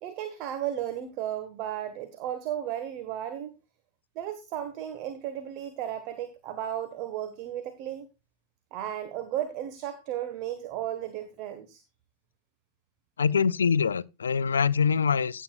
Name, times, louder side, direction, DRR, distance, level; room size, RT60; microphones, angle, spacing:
voice 1, 0.0-3.5 4.1-8.0 8.7-11.8, right 11 dB, 40° right, 1.4 m, -34 dB
voice 2, 13.2-15.4, left 6 dB, 70° left, 0.5 m, -24 dB
16.0 x 9.1 x 2.4 m
figure-of-eight pair, 90°, 0 cm